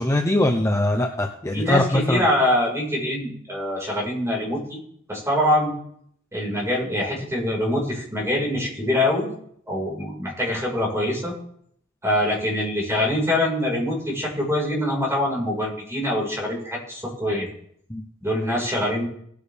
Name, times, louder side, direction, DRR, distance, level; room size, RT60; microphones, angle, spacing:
voice 1, 0.0-2.2 17.9-18.0, left 1 dB, 15° left, 3 dB, 0.8 m, -22 dB
voice 2, 1.5-4.8 5.1-5.7 6.3-9.3 9.7-11.3 12.0-17.5 18.2-19.0, left 1 dB, 15° right, -3 dB, 5.0 m, -24 dB
18.5 x 8.5 x 3.5 m, 0.68 s
head